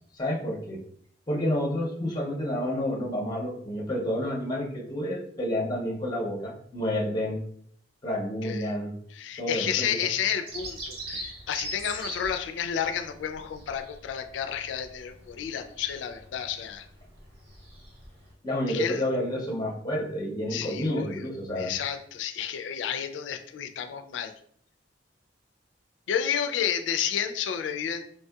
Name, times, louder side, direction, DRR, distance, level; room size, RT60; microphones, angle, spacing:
voice 1, 0.1-0.8 1.3-7.4 8.0-8.9 9.4-10.1 18.4-21.7, left 1 dB, 20° left, -1 dB, 0.5 m, -29 dB
voice 2, 9.1-16.8 18.7-19.0 20.5-21.2 21.6-24.3 26.1-28.1, left 8 dB, 80° left, 7 dB, 0.3 m, -31 dB
Bird vocalization bird call bird song, 10.5-18.3, right 1 dB, 55° right, 0.8 m, -42 dB
3.2 x 2.7 x 2.2 m, 0.62 s
head